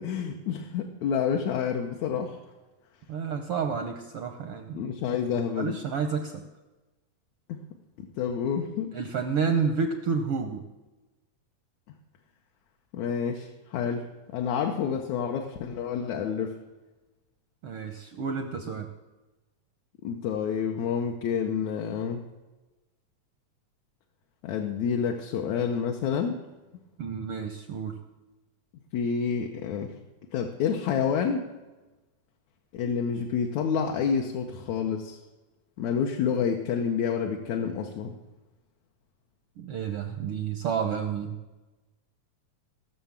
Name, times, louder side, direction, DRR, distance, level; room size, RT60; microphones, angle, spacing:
voice 1, 0.0-2.4 4.7-5.8 7.5-7.6 8.0-8.9 12.9-14.1 14.3-16.5 20.0-22.2 24.4-26.4 28.9-29.9 30.3-31.5 32.7-35.2 35.8-38.1, left 7 dB, 75° left, 2 dB, 2.1 m, -28 dB
voice 2, 3.1-4.8 5.6-6.4 8.9-10.6 17.6-18.9 27.0-28.0 39.6-41.4, right 6 dB, 70° right, 6 dB, 1.3 m, -30 dB
17.0 x 6.6 x 7.3 m, 1.1 s
omnidirectional pair, 3.4 m